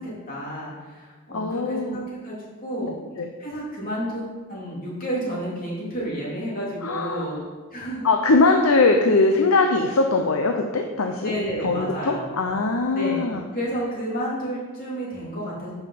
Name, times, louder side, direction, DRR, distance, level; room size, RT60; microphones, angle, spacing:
voice 1, 0.0-2.4 2.6-2.9 3.4-7.4 7.7-8.1 8.4-8.7 11.2-12.3 12.9-13.3 13.5-15.7, right 1 dB, 40° left, -6 dB, 3.1 m, -31 dB
voice 2, 1.3-2.0 2.8-2.9 3.2-3.3 6.8-7.4 8.0-11.3 11.6-13.4, left 3 dB, 80° left, 4 dB, 0.7 m, -21 dB
9.2 x 5.7 x 5.7 m, 1.4 s
head